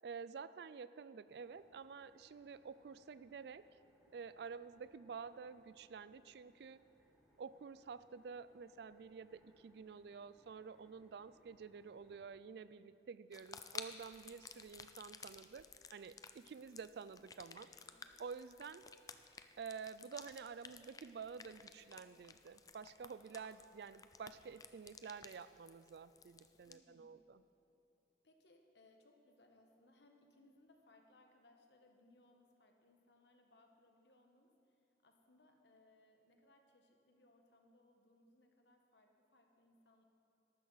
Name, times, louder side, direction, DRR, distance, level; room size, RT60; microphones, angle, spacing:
voice 1, 0.0-3.6 4.1-6.8 7.4-15.7 15.9-17.7 18.2-18.9 19.5-27.4, right 5 dB, 60° right, 15 dB, 0.3 m, -50 dB
sound 1, 1.2-12.2, equal, ahead, 1.8 m, -73 dB
sound 2, 13.3-26.7, left 5 dB, 20° left, 0.4 m, -55 dB
voice 2, 17.5-18.2 26.6-27.2 28.2-40.0, left 2 dB, 70° left, 3 dB, 1.3 m, -69 dB
13.0 x 12.5 x 4.1 m, 2.8 s
head